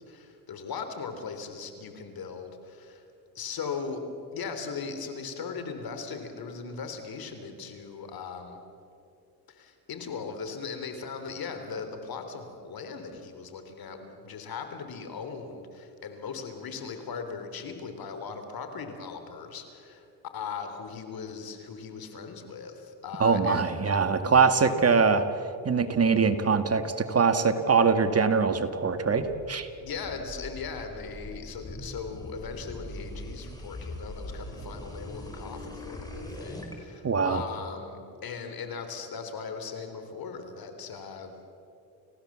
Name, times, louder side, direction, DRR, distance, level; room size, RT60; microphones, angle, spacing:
voice 1, 0.1-3.0 3.3-4.0 4.3-8.6 9.5-20.0 20.3-23.8 29.8-41.3, left 5 dB, 60° left, 7 dB, 3.5 m, -38 dB
voice 2, 23.2-25.2 25.6-29.7 37.0-37.4, right 5 dB, 35° right, 9 dB, 1.8 m, -23 dB
sound 1, 29.2-36.7, left 1 dB, 10° left, 5.5 m, -42 dB
30.0 x 16.0 x 7.5 m, 2.7 s
supercardioid pair, 70°, 40 cm